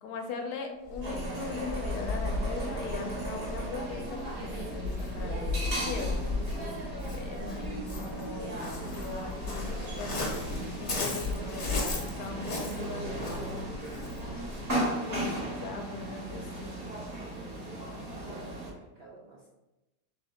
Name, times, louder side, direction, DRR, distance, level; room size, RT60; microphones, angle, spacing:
voice 1, 0.0-6.2 7.1-13.9 14.2-16.8, left 4 dB, 70° left, 3 dB, 1.1 m, -40 dB
Waves surf, 0.9-14.7, left 2 dB, 50° left, 1.1 m, -36 dB
sound 1, 1.0-18.7, right 1 dB, 40° right, 1.1 m, -37 dB
voice 2, 18.1-19.5, right 2 dB, 75° right, -3 dB, 0.5 m, -51 dB
3.5 x 3.2 x 3.5 m, 1.0 s
omnidirectional pair, 1.8 m